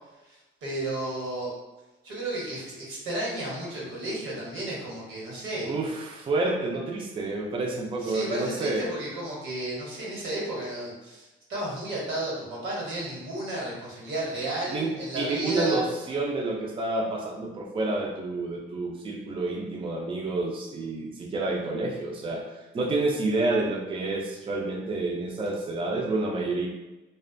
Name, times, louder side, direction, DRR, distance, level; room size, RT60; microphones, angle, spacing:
voice 1, 0.2-1.5 2.0-5.7 8.0-15.8, right 1 dB, 80° right, -5 dB, 1.1 m, -33 dB
voice 2, 5.6-8.9 14.7-14.9 15.2-26.7, right 2 dB, 25° right, 0 dB, 0.4 m, -29 dB
2.4 x 2.1 x 2.5 m, 1.1 s
cardioid pair, 90°, 20 cm